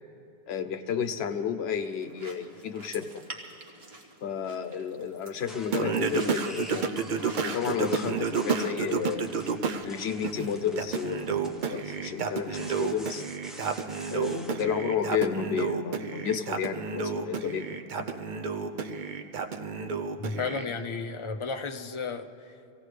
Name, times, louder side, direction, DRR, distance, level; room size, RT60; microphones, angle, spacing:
voice 1, 0.5-3.2 4.2-6.9 7.4-9.3 9.8-13.2 14.1-18.1, left 7 dB, 85° left, 9 dB, 0.9 m, -32 dB
sound 1, 1.8-7.7, right 2 dB, 75° right, 1.6 m, -47 dB
sound 2, 5.4-14.7, equal, ahead, 0.9 m, -47 dB
Singing, 5.7-9.9 10.2-20.6, right 5 dB, 55° right, 0.7 m, -31 dB
voice 2, 20.2-22.5, left 4 dB, 35° left, 5 dB, 0.5 m, -33 dB
24.5 x 16.5 x 3.3 m, 2.8 s
omnidirectional pair, 1.0 m